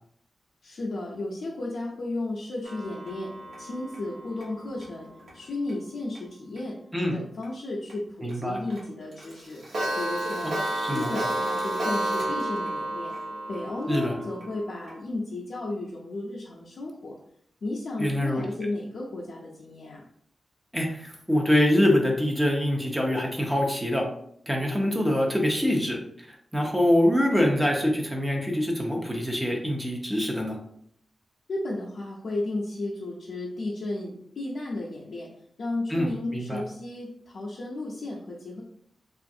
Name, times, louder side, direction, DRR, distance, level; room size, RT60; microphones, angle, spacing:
voice 1, 0.6-5.1 5.3-6.8 7.1-10.6 10.9-13.1 13.5-17.2 17.6-20.0 31.5-35.3 35.6-38.6, left 2 dB, 65° left, -4 dB, 0.5 m, -34 dB
Clock, 2.6-5.7 6.1-6.2 6.6-6.7 7.0-7.1 7.4-7.5 7.9-8.0 8.3-8.4 8.7-8.8 9.1-15.0, right 1 dB, 85° right, 1.0 m, -32 dB
voice 2, 8.2-8.6 10.4-10.5 10.8-11.1 13.9-14.2 18.0-18.4 20.7-24.0 24.5-26.0 26.3-30.6 35.9-36.6, left 1 dB, 10° right, 0 dB, 0.5 m, -24 dB
3.0 x 2.4 x 2.6 m, 0.68 s
wide cardioid pair, 150°, 0 cm